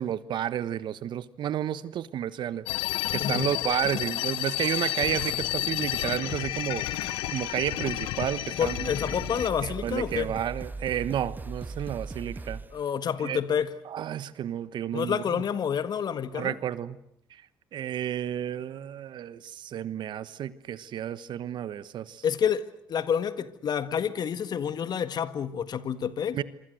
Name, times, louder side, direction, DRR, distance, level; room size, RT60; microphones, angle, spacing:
voice 1, 0.0-6.8 7.3-8.9 9.6-12.6 13.2-13.4 13.8-15.2 16.3-17.0 17.3-17.4 17.7-22.2 26.3-26.4, right 10 dB, 65° right, 1.2 m, -31 dB
sound 1, 2.7-9.5, left 15 dB, 85° left, 1.2 m, -31 dB
voice 2, 3.2-3.6 8.6-10.4 12.7-13.7 14.9-16.6 22.2-26.4, left 8 dB, 55° left, 1.6 m, -29 dB
sound 2, 6.8-7.5 8.2-8.3 8.6-12.8, right 3 dB, 20° right, 1.3 m, -39 dB
27.0 x 24.0 x 7.8 m
supercardioid pair, 70°, 8 cm